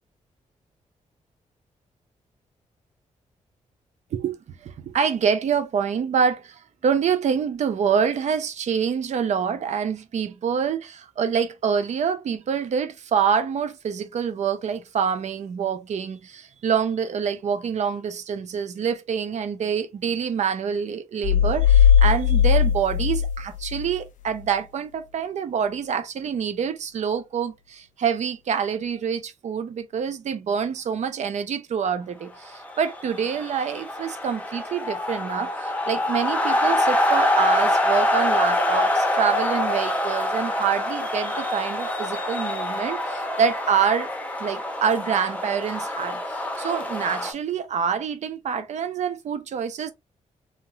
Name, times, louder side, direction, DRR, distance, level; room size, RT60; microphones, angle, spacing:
voice 1, 4.6-44.1 44.4-49.9, right 7 dB, 60° right, 0.6 m, -26 dB
sound 1, 21.2-24.0, left 8 dB, 75° left, 0.4 m, -18 dB
sound 2, 32.5-47.3, left 1 dB, 10° left, 0.7 m, -25 dB
3.2 x 2.8 x 2.3 m
wide cardioid pair, 140°, 13 cm